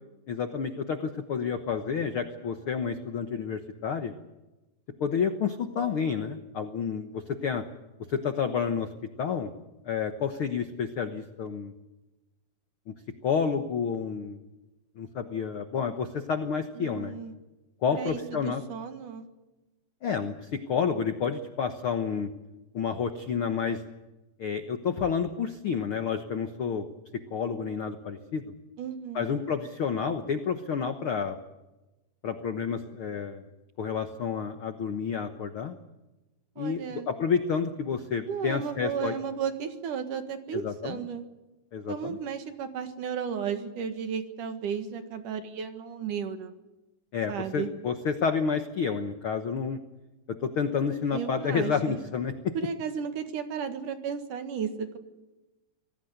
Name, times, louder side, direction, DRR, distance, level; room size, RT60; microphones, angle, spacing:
voice 1, 0.3-4.1 5.0-7.6 8.1-8.9 9.2-9.5 9.8-11.7 12.9-13.0 13.2-14.4 15.0-17.2 17.8-18.6 20.0-22.3 22.7-23.8 24.4-26.9 27.1-28.4 29.1-31.4 32.2-33.4 33.8-35.7 36.6-39.1 40.5-41.0 41.7-42.2 47.1-49.8 50.3-52.5, left 6 dB, 65° left, 7 dB, 1.3 m, -30 dB
voice 2, 16.8-17.3 18.0-19.3 28.8-29.5 36.6-37.1 38.3-41.2 41.9-46.5 47.3-47.7 51.1-52.0 52.5-55.0, right 7 dB, 65° right, 8 dB, 3.1 m, -34 dB
25.5 x 18.0 x 8.0 m, 1.1 s
omnidirectional pair, 4.1 m